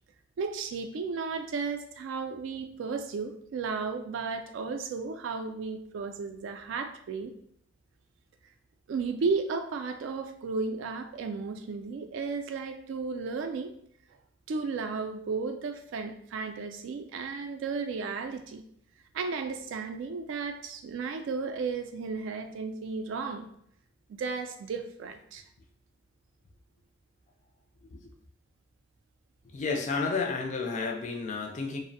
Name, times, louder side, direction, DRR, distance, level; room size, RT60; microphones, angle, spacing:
voice 1, 0.4-7.3 8.9-13.7 14.5-18.6 19.1-23.5 24.1-25.4, right 4 dB, 70° right, 7 dB, 0.3 m, -34 dB
voice 2, 29.4-31.8, left 4 dB, 35° left, 2 dB, 0.3 m, -31 dB
2.5 x 2.0 x 2.6 m, 0.67 s
head